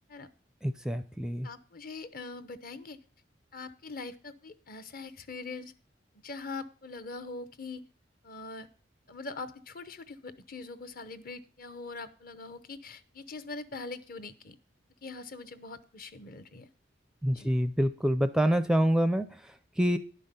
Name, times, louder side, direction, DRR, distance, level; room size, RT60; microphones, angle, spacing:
voice 1, 0.6-1.5 17.2-20.0, equal, 5° right, 10 dB, 0.4 m, -27 dB
voice 2, 1.4-3.0 3.5-5.7 6.2-7.8 8.2-8.7 9.1-14.6 15.0-16.7 17.3-17.5, left 3 dB, 50° left, 12 dB, 0.8 m, -42 dB
11.0 x 5.6 x 6.8 m, 0.40 s
head